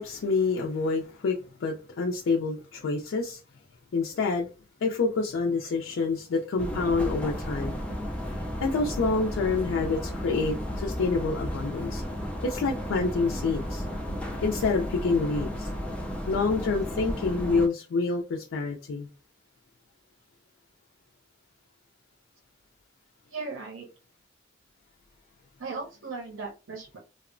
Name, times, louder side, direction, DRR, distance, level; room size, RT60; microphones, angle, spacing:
voice 1, 0.0-3.4 3.9-4.5 4.8-7.8 8.6-12.0 12.4-13.8 14.4-15.7 16.3-19.1, left 4 dB, 75° left, 0.4 m, -27 dB
sound 1, 6.6-17.7, equal, 5° left, 0.4 m, -33 dB
voice 2, 23.3-23.9 25.6-27.0, right 4 dB, 85° right, 0.7 m, -37 dB
2.8 x 2.0 x 2.5 m
head